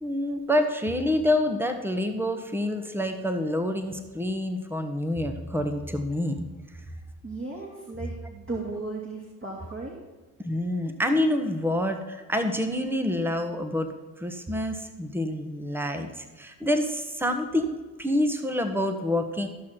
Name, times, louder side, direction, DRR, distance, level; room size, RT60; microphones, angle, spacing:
voice 1, 0.0-6.4 10.4-13.9 14.2-19.5, left 1 dB, 5° right, 7 dB, 1.4 m, -27 dB
voice 2, 7.2-10.0, right 3 dB, 25° right, -3 dB, 2.9 m, -36 dB
14.5 x 6.2 x 4.5 m, 1.3 s
hypercardioid pair, 50°, 46 cm